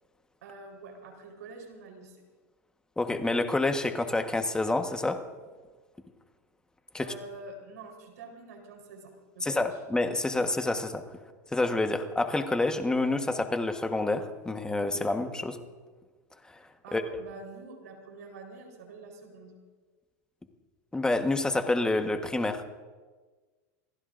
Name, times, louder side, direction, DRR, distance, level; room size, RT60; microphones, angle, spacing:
voice 1, 0.4-2.2 7.0-9.8 16.8-19.5, right 3 dB, 85° right, 2 dB, 4.1 m, -46 dB
voice 2, 3.0-5.2 6.9-7.1 9.4-11.0 11.5-15.6 16.9-17.0 20.9-22.6, left 2 dB, 10° left, 6 dB, 1.3 m, -28 dB
27.5 x 18.5 x 2.6 m, 1.4 s
supercardioid pair, 115°, 9 cm